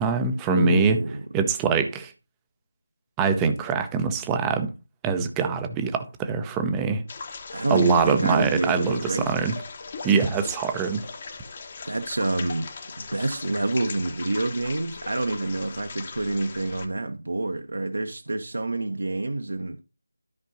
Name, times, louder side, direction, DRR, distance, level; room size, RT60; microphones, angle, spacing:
voice 1, 0.0-1.0 1.3-2.1 3.2-4.7 5.0-7.0 7.7-9.5 10.0-11.0, right 5 dB, 10° right, 0.6 m, -23 dB
voice 2, 0.5-1.2 7.5-9.5 11.8-12.7 13.0-19.8, right 2 dB, 60° right, 0.9 m, -27 dB
sound 1, 7.1-16.9, left 4 dB, 30° left, 1.0 m, -39 dB
13.0 x 5.4 x 2.7 m
figure-of-eight pair, 165°, 0 cm